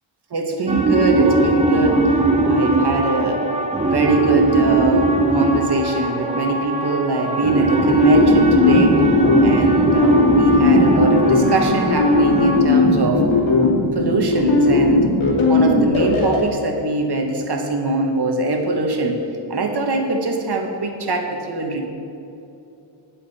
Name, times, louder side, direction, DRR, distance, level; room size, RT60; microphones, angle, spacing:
voice 1, 0.3-2.0 2.4-3.4 3.8-9.0 9.4-13.2 13.9-15.1 15.4-19.2 19.5-21.8, right 2 dB, 55° right, 3 dB, 1.5 m, -22 dB
sound 1, 0.7-12.6, right 2 dB, 15° right, 0.9 m, -19 dB
sound 2, 7.9-16.4, left 3 dB, 75° left, 2.6 m, -17 dB
19.5 x 7.6 x 4.3 m, 2.8 s
wide cardioid pair, 150°, 48 cm